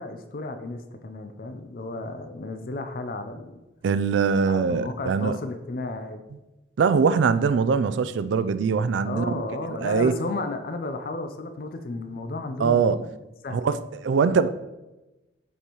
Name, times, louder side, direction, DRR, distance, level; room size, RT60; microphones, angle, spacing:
voice 1, 0.0-3.6 4.5-6.2 9.0-13.1 13.4-13.6, left 2 dB, 50° left, 7 dB, 0.5 m, -33 dB
voice 2, 3.8-5.4 6.8-9.4 9.7-10.1 12.6-13.0 13.5-14.5, right 5 dB, 75° right, 13 dB, 0.3 m, -22 dB
8.2 x 4.3 x 3.0 m, 1.0 s
head